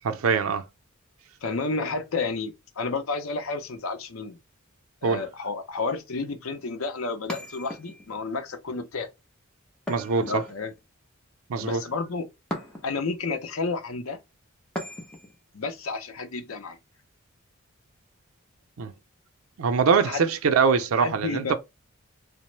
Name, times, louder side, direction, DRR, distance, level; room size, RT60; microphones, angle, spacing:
voice 1, 0.0-0.6 5.0-5.3 9.9-10.4 11.5-11.8 18.8-18.9 19.6-21.6, right 5 dB, 85° right, 0.5 m, -23 dB
voice 2, 1.4-4.4 5.0-9.1 10.2-10.7 11.6-12.3 12.8-14.2 15.5-16.8 20.1-20.2 21.0-21.6, left 4 dB, 75° left, 0.6 m, -31 dB
sound 1, 7.3-8.2 9.9-10.8 12.5-13.1 14.8-15.4, equal, 5° left, 0.7 m, -37 dB
2.9 x 2.0 x 3.1 m
head